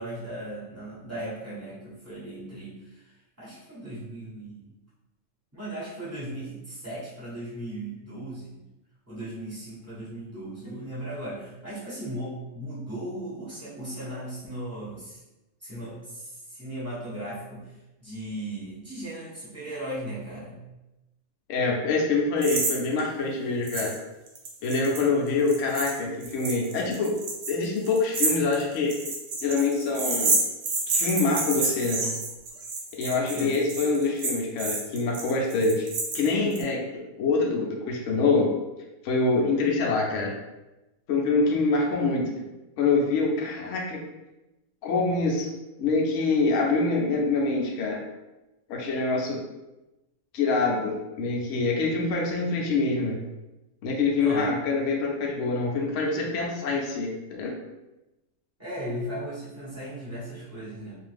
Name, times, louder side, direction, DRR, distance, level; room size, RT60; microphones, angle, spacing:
voice 1, 0.0-4.7 5.5-8.6 9.1-15.2 15.6-20.6 33.3-33.6 54.1-54.5 58.6-60.9, right 1 dB, 10° right, -10 dB, 1.2 m, -37 dB
voice 2, 21.5-23.9 24.6-27.1 27.5-28.9 29.4-30.4 30.9-32.0 33.0-35.9 36.1-38.5 39.0-40.3 41.1-42.3 42.8-44.0 44.8-45.5 45.8-48.0 48.7-49.4 50.3-53.2 53.8-57.6, left 3 dB, 65° left, -1 dB, 0.8 m, -25 dB
sound 1, 22.4-22.7 23.0-23.1 23.7-24.0 24.3-36.6, right 3 dB, 65° right, 1.0 m, -29 dB
2.6 x 2.4 x 3.4 m, 1.0 s
omnidirectional pair, 1.6 m